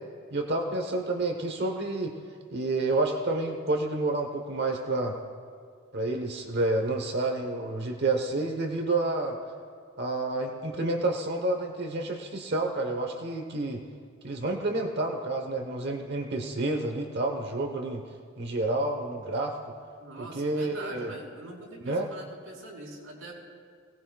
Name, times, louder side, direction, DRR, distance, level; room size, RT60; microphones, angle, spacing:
voice 1, 0.3-2.2 2.5-5.2 5.9-9.4 10.0-13.8 14.2-18.0 18.4-19.5 20.2-21.1 21.8-22.1, right 2 dB, 50° right, 3 dB, 1.0 m, -29 dB
voice 2, 20.0-23.3, right 2 dB, 80° right, -4 dB, 5.2 m, -43 dB
26.0 x 18.5 x 2.3 m, 2.1 s
head